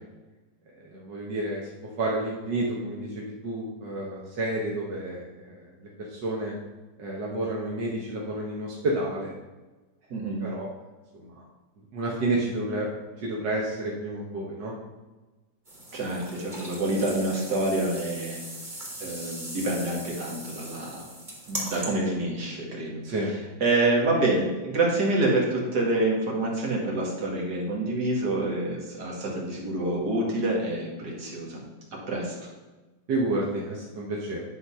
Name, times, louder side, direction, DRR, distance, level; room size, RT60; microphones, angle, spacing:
voice 1, 0.9-1.7 2.0-6.6 7.0-9.3 10.4-10.7 11.2-11.4 11.9-12.9 13.2-14.7 23.0-23.3 33.1-34.4, right 2 dB, 90° right, -3 dB, 1.9 m, -30 dB
voice 2, 10.1-10.5 15.9-18.4 19.0-21.1 21.5-23.0 23.6-31.6 31.9-32.5, right 2 dB, 70° right, -3 dB, 2.6 m, -27 dB
sound 1, 15.7-21.9, right 1 dB, 25° right, 2.4 m, -39 dB
11.0 x 3.9 x 5.6 m, 1.2 s
omnidirectional pair, 1.8 m